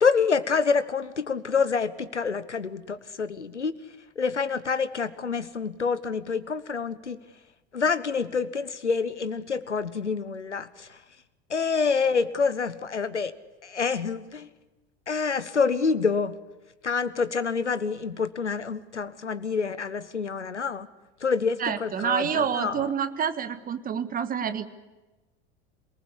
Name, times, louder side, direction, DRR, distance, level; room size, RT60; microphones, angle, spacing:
voice 1, 0.0-3.7 4.2-7.2 7.7-11.0 11.5-13.3 13.6-14.5 15.1-16.4 16.8-20.9 21.2-22.9, left 5 dB, 80° left, 16 dB, 1.1 m, -27 dB
voice 2, 21.6-24.7, right 7 dB, 25° right, 10 dB, 1.6 m, -28 dB
27.0 x 19.5 x 8.4 m, 1.1 s
figure-of-eight pair, 80°, 34 cm